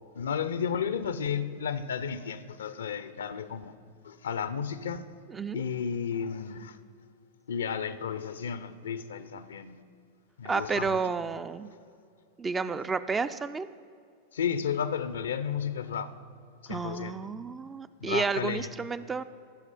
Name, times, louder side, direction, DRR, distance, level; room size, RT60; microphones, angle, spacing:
voice 1, 0.2-3.7 4.0-5.0 5.5-6.8 7.5-9.8 10.4-11.0 14.3-16.1 16.6-17.1 18.0-18.7, left 7 dB, 65° left, 0.5 m, -33 dB
voice 2, 5.3-5.6 10.4-11.7 12.4-13.7 16.7-19.2, right 5 dB, 15° right, 0.3 m, -31 dB
14.5 x 6.0 x 5.6 m
figure-of-eight pair, 90°, 0 cm